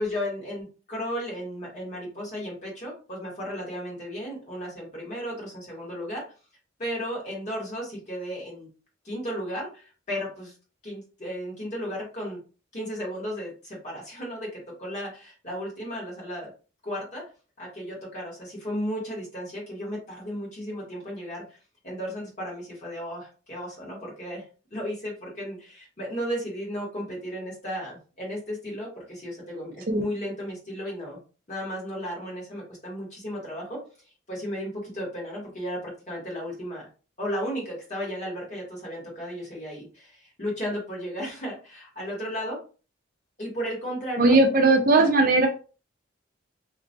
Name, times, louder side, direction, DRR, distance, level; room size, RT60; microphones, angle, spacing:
voice 1, 0.0-6.2 6.8-8.7 9.0-10.5 10.8-12.4 12.7-16.5 16.8-17.2 17.6-21.6 21.8-24.4 24.7-31.2 31.5-33.8 34.3-36.9 37.2-42.6 43.4-44.4 45.0-45.1, equal, 35° left, -4 dB, 1.5 m, -34 dB
voice 2, 44.2-45.5, right 2 dB, 45° right, 4 dB, 0.5 m, -18 dB
2.9 x 2.4 x 2.5 m, 0.35 s
head